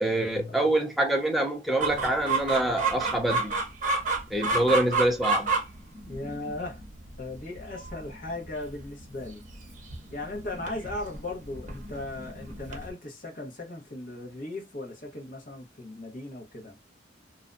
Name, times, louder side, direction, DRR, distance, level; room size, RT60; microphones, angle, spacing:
voice 1, 0.0-3.5 4.3-5.5, right 1 dB, ahead, 0.5 m, -25 dB
Chicken rooster, 1.8-12.9, right 3 dB, 40° right, 0.8 m, -31 dB
voice 2, 6.0-6.8 7.2-9.5 10.1-16.8, left 2 dB, 45° left, 1.0 m, -37 dB
2.6 x 2.2 x 2.4 m
head